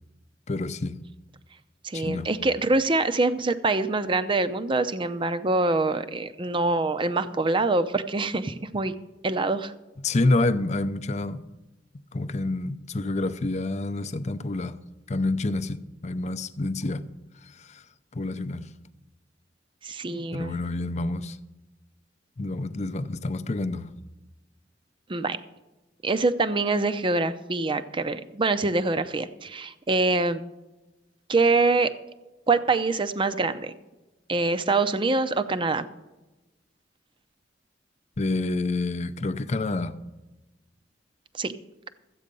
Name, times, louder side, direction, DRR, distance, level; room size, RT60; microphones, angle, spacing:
voice 1, 0.5-1.0 1.9-2.3 10.0-11.4 12.1-14.8 15.1-17.0 17.6-17.8 18.1-18.7 20.3-21.4 22.4-23.9 38.2-40.0, left 2 dB, 40° left, 0.6 m, -28 dB
voice 2, 1.8-8.9 9.2-9.7 19.8-20.6 25.1-25.4 26.0-30.4 31.3-31.9 32.5-33.7 34.3-35.9 41.3-41.5, right 3 dB, 30° right, 0.6 m, -25 dB
13.5 x 8.5 x 5.3 m
head